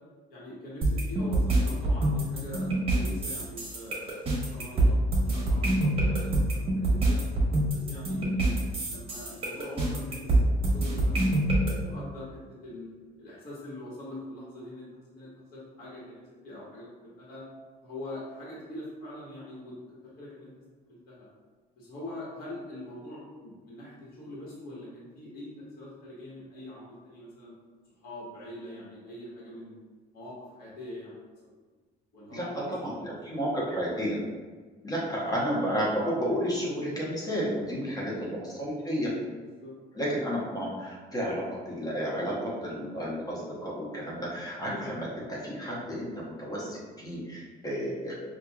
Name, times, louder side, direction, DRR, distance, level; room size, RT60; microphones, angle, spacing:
voice 1, 0.3-2.7 2.9-7.2 7.7-12.9 13.2-14.9 15.1-17.4 17.8-19.7 20.0-20.5 20.9-21.3 21.8-27.5 28.0-29.7 30.1-31.5 32.1-32.7 33.0-33.5 37.8-38.1 39.4-39.7, left 1 dB, 65° left, -7 dB, 1.3 m, -43 dB
sound 1, 0.8-11.7, right 1 dB, 35° right, 1.2 m, -25 dB
voice 2, 32.3-34.2 34.8-39.1 39.9-48.1, equal, 20° left, -6 dB, 0.9 m, -32 dB
4.4 x 2.5 x 2.3 m, 1.5 s
cardioid pair, 110°, 17 cm